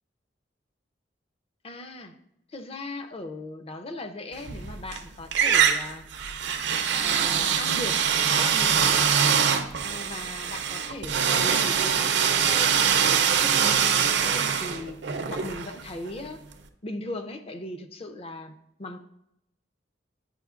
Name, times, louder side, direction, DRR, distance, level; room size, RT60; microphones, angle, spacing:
voice 1, 1.6-2.1 2.5-6.0 7.0-9.3 9.8-16.4 16.8-19.0, left 1 dB, 35° left, 6 dB, 0.5 m, -38 dB
sound 1, 4.4-5.0 5.3-16.2, right 7 dB, 65° right, 0.5 m, -23 dB
9.0 x 5.0 x 2.4 m, 0.80 s
head